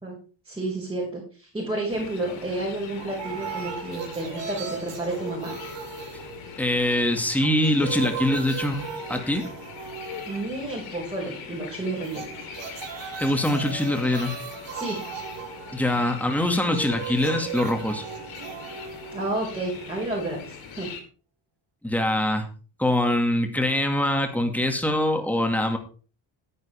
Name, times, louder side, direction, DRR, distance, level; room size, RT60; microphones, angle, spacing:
voice 1, 0.4-5.5 10.3-12.2 14.7-15.0 19.1-20.9, right 2 dB, 10° right, -5 dB, 5.6 m, -31 dB
sound 1, 1.9-21.0, left 6 dB, 85° left, 4.9 m, -42 dB
sound 2, 3.0-7.0 7.3-11.0 12.0-20.0, right 6 dB, 65° right, 3.5 m, -37 dB
voice 2, 6.6-8.8 9.1-9.4 13.2-14.3 15.7-18.0 21.8-22.5 22.8-25.8, left 1 dB, 5° left, 5 dB, 2.3 m, -23 dB
16.0 x 9.6 x 3.6 m, 0.37 s
cardioid pair, 105°, 46 cm